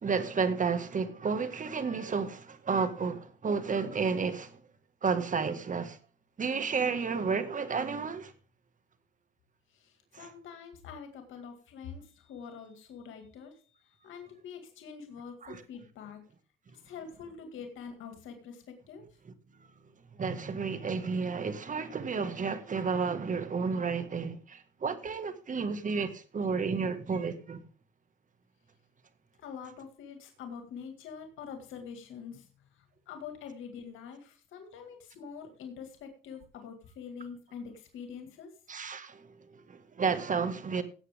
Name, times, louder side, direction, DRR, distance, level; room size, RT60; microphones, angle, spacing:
voice 1, 0.0-4.6 5.0-6.0 6.4-8.3 10.1-10.3 15.4-15.6 20.2-27.6 38.7-40.8, right 5 dB, 40° right, 1.9 m, -31 dB
voice 2, 9.7-16.2 16.7-19.1 29.4-38.6, left 6 dB, 85° left, 2.1 m, -45 dB
17.0 x 8.2 x 3.6 m
cardioid pair, 90°, 20 cm